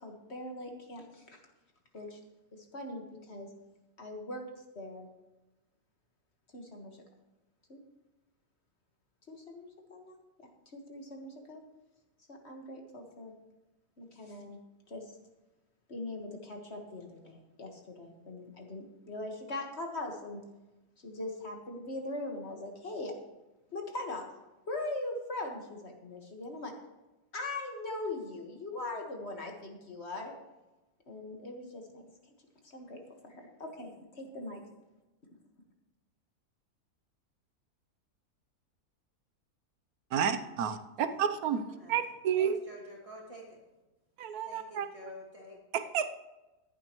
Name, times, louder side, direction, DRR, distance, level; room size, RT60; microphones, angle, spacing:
voice 1, 0.0-1.4 1.9-2.2 2.7-3.5 4.0-4.4 4.8-5.1 6.5-7.0 7.7-7.8 9.3-10.2 10.7-11.6 12.3-13.3 14.0-14.6 14.9-15.0 15.9-20.4 21.0-23.1 23.7-24.2 24.7-26.7 27.3-30.4 31.1-32.0 32.6-33.0 33.2-34.6, left 2 dB, 45° left, 2 dB, 1.8 m, -41 dB
voice 2, 40.1-42.6 44.2-44.9 45.7-46.2, right 8 dB, 75° right, 9 dB, 1.3 m, -31 dB
voice 3, 41.5-43.6 44.4-45.6, equal, 20° right, -3 dB, 2.6 m, -49 dB
15.0 x 11.0 x 3.1 m, 1.0 s
omnidirectional pair, 1.6 m